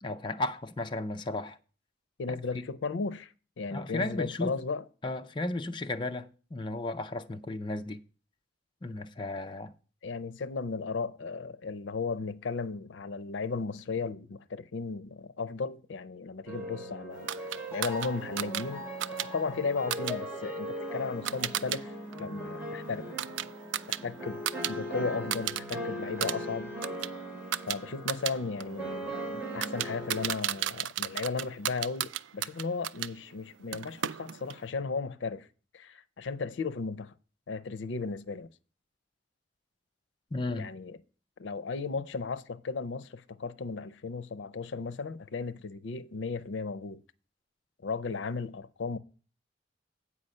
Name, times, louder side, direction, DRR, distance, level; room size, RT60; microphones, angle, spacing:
voice 1, 0.0-1.6 2.3-2.4 3.7-4.6 5.0-8.0 8.8-9.7 40.3-40.7, left 2 dB, 25° left, 0.4 m, -34 dB
voice 2, 2.2-4.8 10.0-17.3 17.7-18.9 19.2-23.1 23.9-26.7 27.7-35.5 35.7-37.1 37.5-38.5 40.6-41.0 41.4-47.0 47.8-49.0, left 4 dB, 80° left, 0.5 m, -35 dB
sound 1, 16.5-30.3, equal, 15° right, 2.3 m, -39 dB
sound 2, 17.3-21.8 22.1-24.7 25.0-25.8 26.1-33.1 33.7-34.6, right 11 dB, 80° right, 0.3 m, -35 dB
8.5 x 4.8 x 6.5 m
head